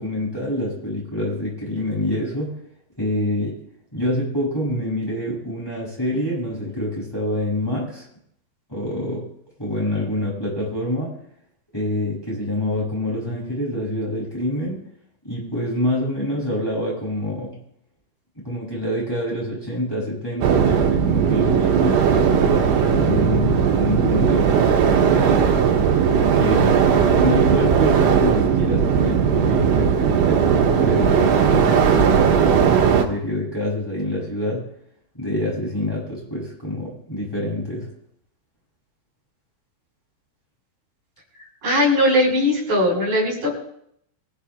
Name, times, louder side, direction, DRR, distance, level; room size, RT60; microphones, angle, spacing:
voice 1, 0.0-2.6 3.0-3.6 3.9-8.1 8.7-9.3 9.6-11.1 11.7-14.8 15.2-17.6 18.4-25.5 26.0-34.6 35.1-37.9, left 1 dB, 5° left, -5 dB, 7.4 m, -26 dB
sound 1, 20.4-33.0, right 7 dB, 80° right, 4.0 m, -17 dB
voice 2, 41.6-43.7, left 1 dB, 45° right, -3 dB, 7.2 m, -19 dB
24.5 x 16.5 x 2.5 m, 0.70 s
omnidirectional pair, 5.3 m